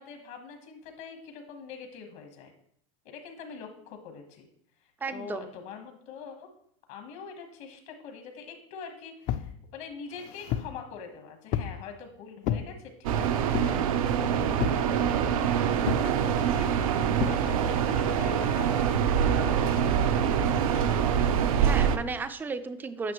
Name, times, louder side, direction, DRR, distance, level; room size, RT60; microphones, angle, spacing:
voice 1, 0.0-2.5 3.0-4.5 4.8-6.5 6.9-14.8 15.7-18.8 19.4-21.0, left 6 dB, 65° left, 5 dB, 1.3 m, -44 dB
voice 2, 5.0-5.5 21.6-23.1, right 4 dB, 10° right, 11 dB, 0.4 m, -34 dB
sound 1, 9.3-9.5 10.1-10.8 11.5-11.8 12.4-12.7 13.5-13.9 14.6-14.9 15.9-16.1 17.2-17.4, left 10 dB, 45° left, 0.5 m, -31 dB
sound 2, 13.0-22.0, right 8 dB, 85° right, 0.6 m, -25 dB
9.2 x 5.6 x 3.0 m, 0.67 s
supercardioid pair, 130°, 18 cm